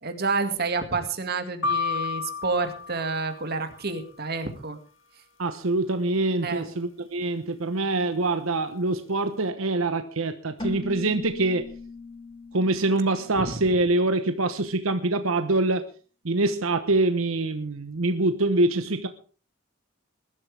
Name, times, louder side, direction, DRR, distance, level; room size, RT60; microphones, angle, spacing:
voice 1, 0.0-4.8 6.4-6.7 13.4-13.6, right 4 dB, 50° right, 7 dB, 2.2 m, -29 dB
sound 1, 1.6-3.8, left 4 dB, 70° left, 2.1 m, -31 dB
voice 2, 5.4-11.7 12.5-15.9 16.2-19.1, right 2 dB, 80° right, 9 dB, 1.1 m, -25 dB
Keyboard (musical), 10.6-14.2, left 2 dB, 25° left, 2.5 m, -39 dB
21.0 x 12.5 x 3.5 m, 0.39 s
head